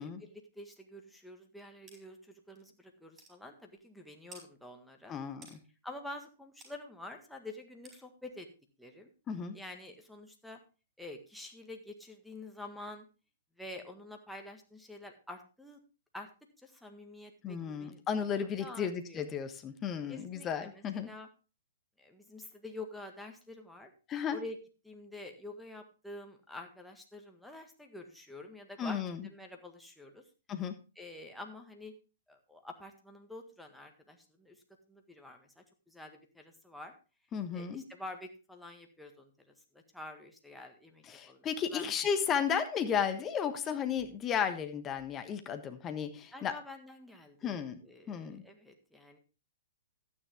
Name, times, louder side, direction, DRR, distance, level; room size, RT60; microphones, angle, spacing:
voice 1, 0.0-5.1 5.8-8.5 8.8-9.1 9.5-10.6 11.0-13.1 13.6-15.8 16.1-16.3 16.6-18.3 18.6-19.2 20.1-21.3 22.0-23.9 24.3-24.6 24.8-30.2 30.9-31.9 32.3-34.6 34.9-36.9 37.5-41.9 46.3-49.2, left 2 dB, ahead, 2 dB, 1.7 m, -48 dB
sound 1, 1.9-2.0 2.6-2.7 3.2-3.4 4.3-4.5 5.4-5.6 6.6-6.7 7.8-8.0, right 2 dB, 20° right, 4.5 m, -52 dB
voice 2, 5.1-5.6 9.3-9.6 17.4-21.1 24.1-24.4 28.8-29.3 30.5-30.7 37.3-37.8 41.1-46.5 47.4-47.8 48.1-48.4, left 7 dB, 20° left, 8 dB, 1.3 m, -34 dB
12.0 x 9.5 x 3.5 m, 0.33 s
figure-of-eight pair, 115°, 0 cm